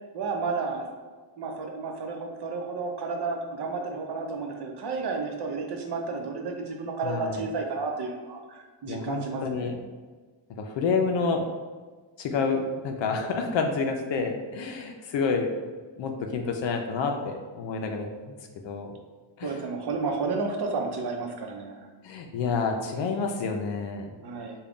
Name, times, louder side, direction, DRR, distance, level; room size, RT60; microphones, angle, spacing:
voice 1, 0.1-0.9 1.4-9.8 19.4-21.9 24.2-24.5, right 4 dB, 55° right, 2 dB, 0.7 m, -32 dB
voice 2, 7.0-7.5 8.9-9.8 10.6-11.5 12.2-15.5 16.0-18.4 18.6-18.9 19.4-19.5 22.0-24.1, left 4 dB, 65° left, 3 dB, 0.5 m, -29 dB
3.7 x 2.3 x 3.5 m, 1.4 s
cardioid pair, 80°, 47 cm